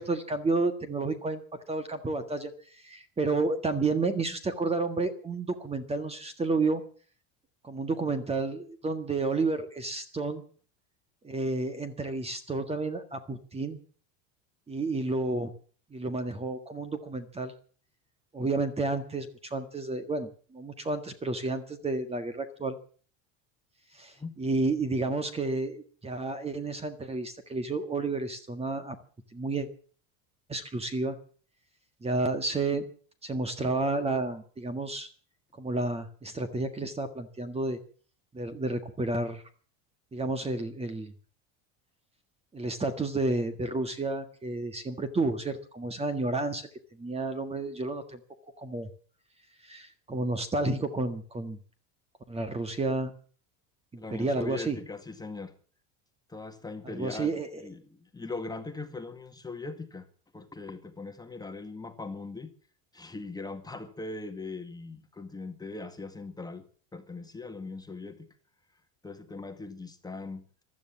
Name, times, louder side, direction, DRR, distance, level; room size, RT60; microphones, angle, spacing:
voice 1, 0.0-1.4 1.7-6.8 7.6-10.4 11.2-13.8 14.7-15.5 15.9-17.5 18.3-22.8 23.9-29.0 29.3-29.7 30.5-31.2 32.0-32.9 33.2-35.1 35.6-37.8 38.3-39.4 40.1-41.1 42.5-46.7 47.0-48.2 48.6-48.9 49.6-51.6 52.3-53.1 53.9-54.8 57.0-57.6, right 3 dB, 15° right, 9 dB, 1.7 m, -31 dB
voice 2, 54.0-55.5 56.3-60.1 60.3-62.5 62.9-66.7 66.9-68.3 69.0-70.4, left 3 dB, 10° left, 6 dB, 1.9 m, -40 dB
15.5 x 12.5 x 7.2 m, 0.43 s
cardioid pair, 140°, 38 cm